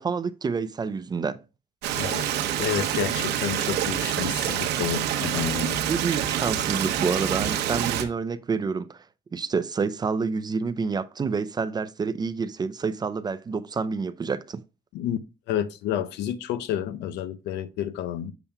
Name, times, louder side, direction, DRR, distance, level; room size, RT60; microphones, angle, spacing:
voice 1, 0.0-1.4 5.9-9.0 9.3-14.6, right 5 dB, 25° right, 0.4 m, -28 dB
Stream, 1.8-8.0, right 10 dB, 85° right, 0.8 m, -27 dB
voice 2, 2.0-2.3 2.6-5.8 14.9-15.2 15.5-18.3, left 10 dB, 85° left, 0.7 m, -30 dB
7.1 x 6.9 x 2.2 m
cardioid pair, 110°, 17 cm